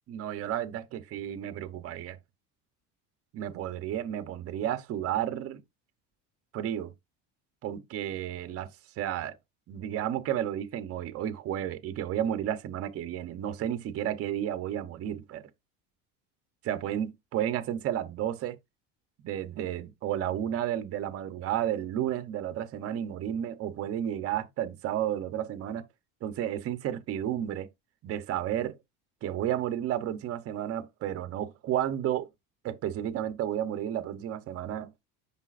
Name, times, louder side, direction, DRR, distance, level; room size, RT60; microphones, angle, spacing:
voice 1, 0.1-2.2 3.3-5.6 6.5-6.9 7.6-8.7 9.0-9.4 9.7-15.5 16.6-18.6 19.2-25.9 26.2-27.7 28.0-28.8 29.2-32.3 32.6-34.9, right 11 dB, 40° right, 0.9 m, -32 dB
9.8 x 5.7 x 2.5 m
cardioid pair, 140°, 34 cm